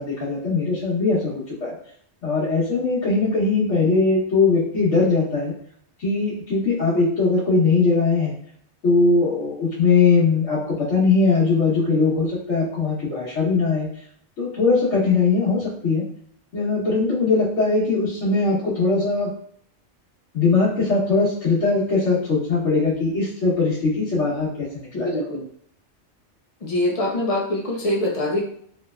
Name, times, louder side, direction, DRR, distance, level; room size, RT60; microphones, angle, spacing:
voice 1, 0.0-1.7 2.2-5.5 6.0-8.3 8.8-13.9 14.4-16.0 16.5-19.3 20.3-25.2, left 4 dB, 80° left, -10 dB, 1.3 m, -20 dB
voice 2, 24.9-25.4 26.6-28.4, left 1 dB, 35° left, -2 dB, 0.7 m, -24 dB
3.3 x 3.0 x 2.3 m, 0.63 s
omnidirectional pair, 1.2 m